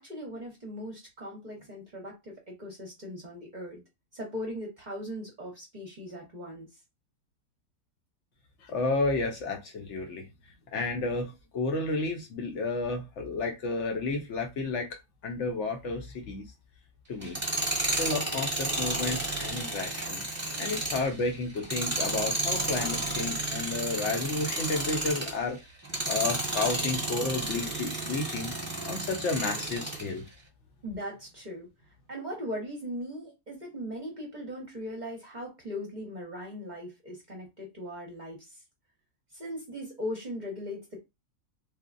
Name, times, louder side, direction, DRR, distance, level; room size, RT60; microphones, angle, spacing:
voice 1, 0.0-3.8 4.1-6.7 30.8-31.7 32.1-38.5 39.3-41.0, equal, 40° right, 0.7 m, -39 dB
voice 2, 8.6-10.3 10.7-16.5 17.1-17.4 18.0-20.3 20.6-25.6 26.0-28.5 28.8-30.2, left 3 dB, 65° left, 0.8 m, -31 dB
Tools, 17.2-25.4 25.8-30.1, right 2 dB, 15° right, 0.9 m, -32 dB
3.2 x 2.1 x 2.4 m
omnidirectional pair, 1.5 m